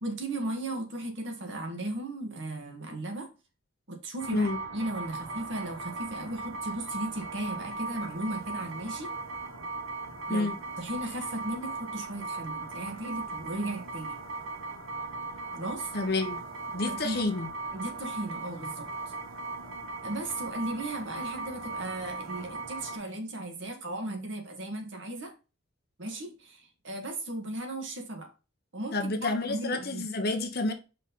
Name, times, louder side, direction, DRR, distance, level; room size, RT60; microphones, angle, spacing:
voice 1, 0.0-3.3 3.9-9.1 10.3-14.2 15.5-15.9 16.7-17.2 17.7-19.1 20.0-25.3 26.0-28.3 28.7-30.0, right 1 dB, 60° right, 1.7 m, -36 dB
sound 1, 4.2-23.0, right 3 dB, 80° right, 1.5 m, -38 dB
voice 2, 15.9-16.4 16.7-17.5 28.9-30.7, left 2 dB, 50° left, 1.1 m, -29 dB
5.4 x 4.1 x 5.3 m
head